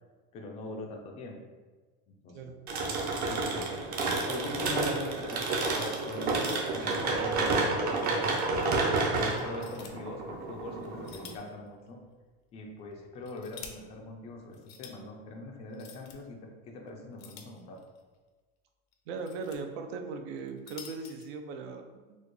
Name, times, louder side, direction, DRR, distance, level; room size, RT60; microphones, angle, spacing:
voice 1, 0.3-1.4 2.1-2.6 3.3-3.7 4.2-12.0 12.5-17.8, left 2 dB, 20° left, 1 dB, 0.3 m, -42 dB
sound 1, 2.7-11.3, right 3 dB, 30° right, 0.5 m, -30 dB
sound 2, 6.5-7.5 7.8-7.9 8.5-8.6 9.4-9.9 10.8-11.6 11.9-12.0 12.9-13.7 14.5-14.9 15.7-16.2 17.2-18.0 18.9-19.6 20.4-21.3, left 7 dB, 85° left, 0.6 m, -49 dB
voice 2, 19.1-22.2, right 4 dB, 70° right, 5 dB, 0.6 m, -39 dB
4.3 x 2.3 x 3.0 m, 1.4 s
supercardioid pair, 155°, 31 cm